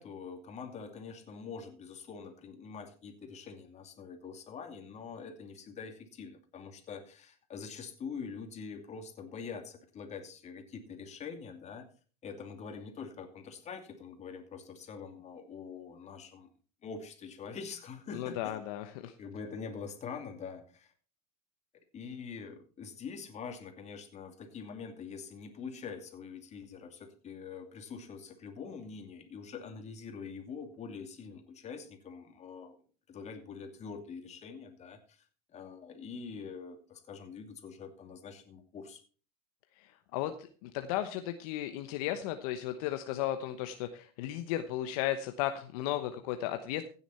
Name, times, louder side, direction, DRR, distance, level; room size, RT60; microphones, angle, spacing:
voice 1, 0.0-11.9 12.2-16.5 16.8-18.6 19.2-20.9 21.9-32.8 33.1-35.2 35.5-39.0, left 5 dB, 35° left, 6 dB, 2.6 m, -44 dB
voice 2, 18.1-19.1 39.8-46.8, left 12 dB, 65° left, 8 dB, 1.1 m, -35 dB
16.0 x 7.2 x 4.4 m, 0.39 s
hypercardioid pair, 95°, 21 cm